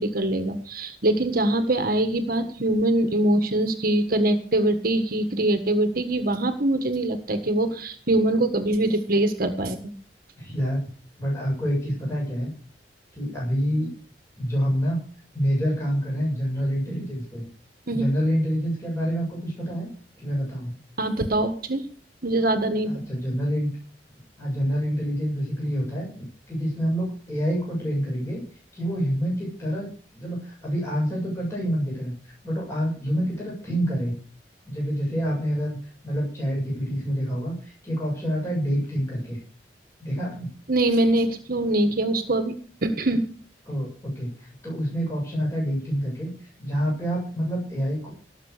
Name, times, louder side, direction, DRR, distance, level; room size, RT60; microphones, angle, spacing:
voice 1, 0.0-9.8 17.9-18.0 21.0-21.8 22.2-22.9 40.7-42.5 42.8-43.2, right 1 dB, 55° right, 8 dB, 1.6 m, -23 dB
voice 2, 10.4-10.9 11.2-12.5 13.1-13.9 14.4-15.0 15.3-17.5 17.9-19.9 20.2-20.8 22.9-23.7 24.4-28.4 28.7-29.9 30.1-34.2 34.6-39.4 40.0-40.5 43.1-43.2 43.7-48.1, equal, 15° left, -4 dB, 7.5 m, -27 dB
18.0 x 7.4 x 6.7 m, 0.43 s
head